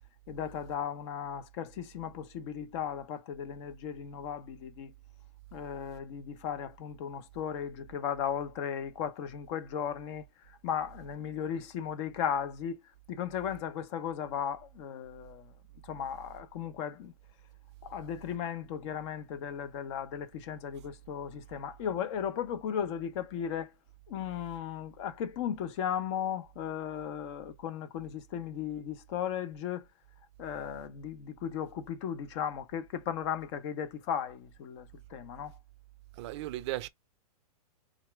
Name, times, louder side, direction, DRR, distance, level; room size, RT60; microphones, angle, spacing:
voice 1, 0.3-4.9 5.5-10.2 10.6-12.8 13.1-15.5 15.8-17.1 17.8-23.7 24.1-29.8 30.4-35.5, left 8 dB, 45° left, 0.8 m, -36 dB
voice 2, 36.2-36.9, right 16 dB, 45° right, 0.4 m, -36 dB
4.3 x 2.5 x 3.1 m
hypercardioid pair, 120°, 20 cm